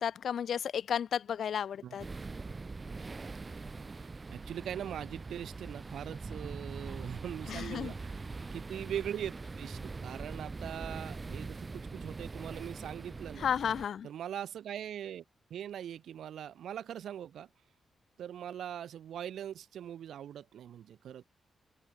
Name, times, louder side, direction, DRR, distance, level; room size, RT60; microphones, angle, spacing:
voice 1, 0.0-2.0 7.5-7.9 13.4-14.1, left 8 dB, 70° left, 0.4 m, -33 dB
sound 1, 2.0-13.9, right 3 dB, 30° right, 3.8 m, -42 dB
voice 2, 3.9-13.5 14.0-15.2 15.5-17.5 18.2-21.2, right 10 dB, 85° right, 0.9 m, -41 dB
cardioid pair, 105°, 0 cm